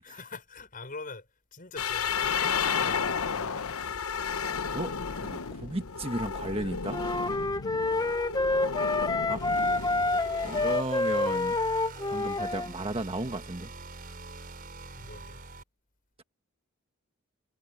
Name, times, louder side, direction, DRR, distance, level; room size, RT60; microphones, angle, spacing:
voice 1, 0.0-3.9 6.6-6.8 7.9-8.1 15.0-15.4, left 3 dB, 40° left, 6.1 m, -45 dB
sound 1, 1.8-10.8, left 6 dB, 85° left, 0.9 m, -32 dB
voice 2, 4.7-7.0 9.3-9.4 10.4-11.6 12.1-13.7, right 2 dB, 25° right, 1.4 m, -34 dB
sound 2, 6.9-12.7, left 2 dB, 20° left, 0.7 m, -28 dB
sound 3, 9.2-15.6, right 3 dB, 45° right, 5.3 m, -44 dB
head